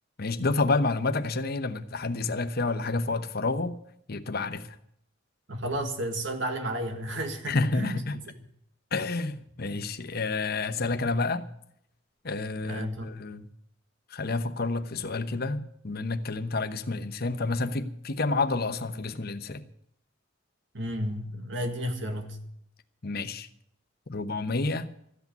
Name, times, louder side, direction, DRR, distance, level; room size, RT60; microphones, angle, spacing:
voice 1, 0.2-3.8 4.1-4.7 7.5-8.2 8.9-11.4 12.2-13.5 14.1-19.6 23.0-23.5 24.1-24.9, left 3 dB, 55° left, 1.0 m, -29 dB
voice 2, 5.5-8.0 12.6-13.1 20.7-22.4, right 1 dB, 65° right, 1.9 m, -32 dB
14.0 x 8.3 x 9.2 m
head